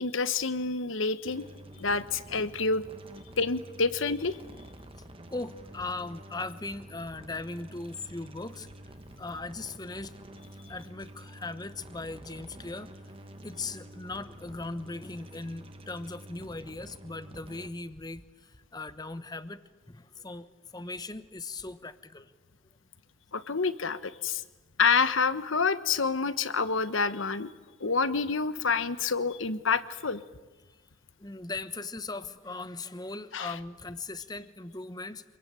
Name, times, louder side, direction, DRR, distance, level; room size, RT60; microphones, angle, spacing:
voice 1, 0.0-1.5 1.8-2.8 3.4-4.4 23.3-24.4 24.8-27.5 27.8-30.2 33.3-33.5, left 4 dB, 85° left, 14 dB, 1.1 m, -28 dB
sound 1, 1.3-17.7, right 1 dB, 30° right, 1.6 m, -48 dB
voice 2, 5.3-10.2 10.7-12.9 13.4-19.6 19.9-20.5 20.7-22.3 31.2-35.2, left 3 dB, 20° left, 13 dB, 1.0 m, -39 dB
26.0 x 22.5 x 8.9 m, 1.2 s
head